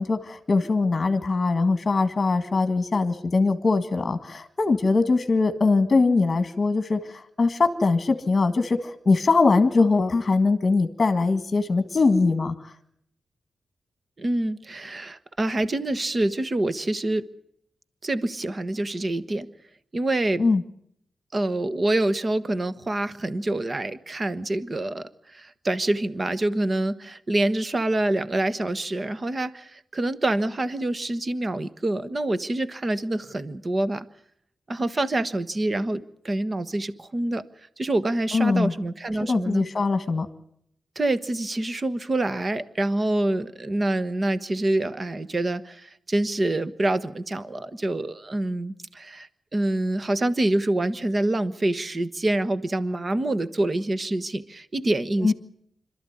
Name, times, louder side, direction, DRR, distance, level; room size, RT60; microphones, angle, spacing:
voice 1, 0.0-12.7 20.4-20.6 38.3-38.7 39.3-40.3 55.2-55.3, left 3 dB, 30° left, 9 dB, 1.7 m, -22 dB
voice 2, 14.2-17.3 18.0-19.5 19.9-20.4 21.3-34.0 34.7-37.4 37.8-39.6 40.9-55.3, right 1 dB, 25° right, 13 dB, 1.2 m, -26 dB
26.5 x 13.0 x 9.7 m, 0.71 s
wide cardioid pair, 150°, 0 cm